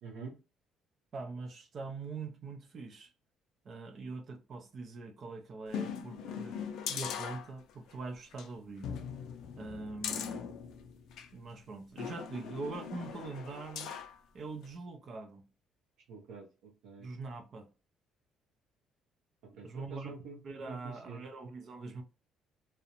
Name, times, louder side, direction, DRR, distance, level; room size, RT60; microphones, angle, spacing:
voice 1, 0.0-0.3 16.1-17.1 19.6-21.2, right 5 dB, 90° right, 0.7 m, -47 dB
voice 2, 1.1-3.1 3.6-6.6 6.9-8.9 9.6-10.5 11.3-13.9 14.3-15.4 17.0-17.7 19.5-20.1 20.4-22.0, right 3 dB, 35° right, 0.4 m, -43 dB
sound 1, 5.7-7.9 8.3-8.5 8.8-11.3 12.0-14.2 14.6-14.7, left 7 dB, 65° left, 0.4 m, -40 dB
2.4 x 2.1 x 2.8 m
cardioid pair, 175°, 0 cm